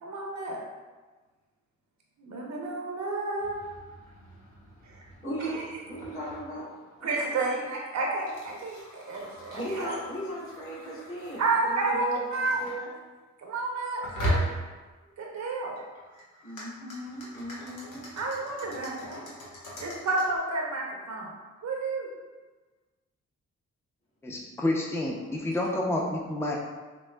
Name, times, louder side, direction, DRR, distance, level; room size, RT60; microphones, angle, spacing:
voice 1, 0.0-0.6 2.2-3.6 4.8-5.0 7.0-10.0 11.4-12.6 13.4-14.4 15.2-15.7 18.2-19.2 19.8-21.3 21.6-22.1, right 3 dB, 65° right, -1 dB, 0.7 m, -30 dB
sound 1, 3.4-12.8 14.0-14.9 15.8-20.4, equal, 75° left, 0.9 m, -39 dB
voice 2, 5.2-6.7 7.0-7.2 9.5-12.9 16.4-18.1, right 1 dB, 45° left, -8 dB, 1.5 m, -37 dB
voice 3, 24.2-26.6, left 1 dB, 10° left, -1 dB, 0.5 m, -29 dB
5.9 x 2.0 x 2.2 m, 1.3 s
supercardioid pair, 45°, 30 cm